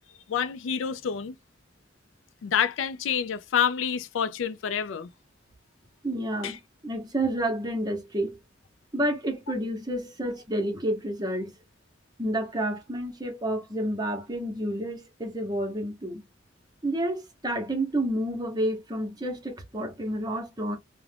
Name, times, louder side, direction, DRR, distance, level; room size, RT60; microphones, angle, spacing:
voice 1, 0.3-1.3 2.4-5.1 6.4-6.6, left 8 dB, 80° left, 0.3 m, -28 dB
voice 2, 6.0-6.6 6.8-8.4 8.9-11.5 12.2-16.2 16.8-20.8, right 1 dB, 20° right, 0.7 m, -29 dB
2.4 x 2.1 x 3.3 m
head